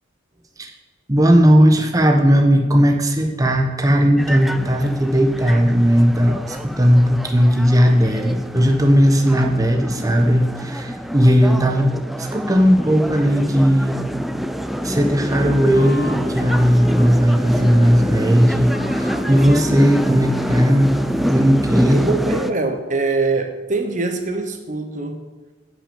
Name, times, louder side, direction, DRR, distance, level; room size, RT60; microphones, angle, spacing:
voice 1, 1.1-14.0 14.8-20.9 21.2-22.1, equal, 20° right, 3 dB, 0.9 m, -16 dB
sound 1, 4.2-22.5, equal, ahead, 0.4 m, -26 dB
Wind instrument woodwind instrument, 14.4-22.1, left 1 dB, 55° left, 2.2 m, -36 dB
voice 2, 21.8-25.2, right 3 dB, 40° right, 6 dB, 0.9 m, -23 dB
10.5 x 6.2 x 8.5 m, 1.3 s
head